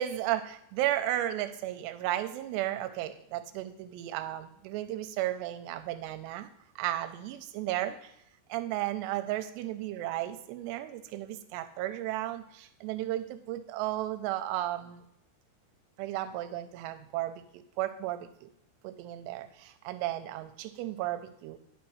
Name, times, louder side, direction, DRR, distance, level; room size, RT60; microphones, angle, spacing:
voice 1, 0.0-6.5 6.8-8.1 8.5-15.0 16.0-18.5 18.8-21.6, right 13 dB, 85° right, 9 dB, 2.6 m, -34 dB
9.4 x 6.0 x 3.1 m, 0.73 s
omnidirectional pair, 5.0 m